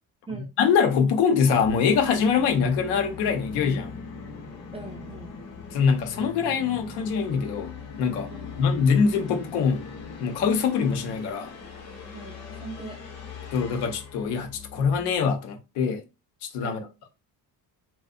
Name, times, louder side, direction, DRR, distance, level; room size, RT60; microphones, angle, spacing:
voice 1, 0.6-3.9 5.7-7.7 8.0-8.3 8.6-9.9 10.2-11.5 13.5-16.0 16.4-16.9, left 6 dB, 85° left, 0.7 m, -23 dB
Musical instrument, 1.6-15.3, left 4 dB, 40° left, 0.7 m, -41 dB
voice 2, 4.7-5.4 8.3-8.6 12.1-13.0 16.6-16.9, right 4 dB, 15° right, 0.3 m, -40 dB
2.6 x 2.0 x 2.4 m
cardioid pair, 130°, 40 cm